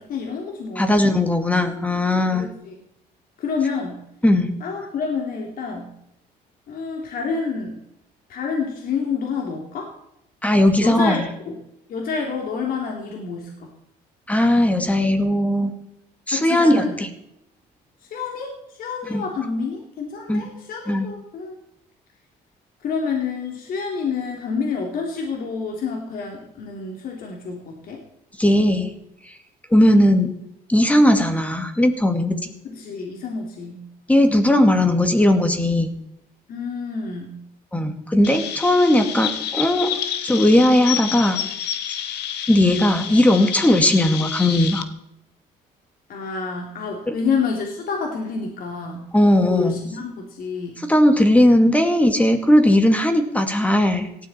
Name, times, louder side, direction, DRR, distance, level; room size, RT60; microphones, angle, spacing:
voice 1, 0.0-1.0 2.3-2.7 3.4-4.0 4.6-5.9 6.7-7.8 8.3-9.9 10.8-11.6 11.9-13.7 16.3-17.0 18.0-21.6 22.8-28.0 32.6-33.8 36.5-37.3 46.1-49.1 49.4-50.8, left 5 dB, 60° left, 0 dB, 3.5 m, -28 dB
voice 2, 0.8-2.5 4.2-4.5 10.4-11.3 14.3-15.7 16.3-16.8 19.1-19.2 20.3-20.4 20.9-21.1 28.4-28.9 29.7-30.3 30.7-32.5 34.1-35.9 37.7-40.0 40.2-41.4 42.5-44.9 47.1-47.2 49.1-49.8 50.8-54.3, left 1 dB, 10° left, 6 dB, 2.4 m, -17 dB
Chirp tweet, 38.2-44.8, left 10 dB, 80° left, 1.4 m, -29 dB
18.0 x 13.0 x 4.5 m, 0.81 s
cardioid pair, 110°, 17 cm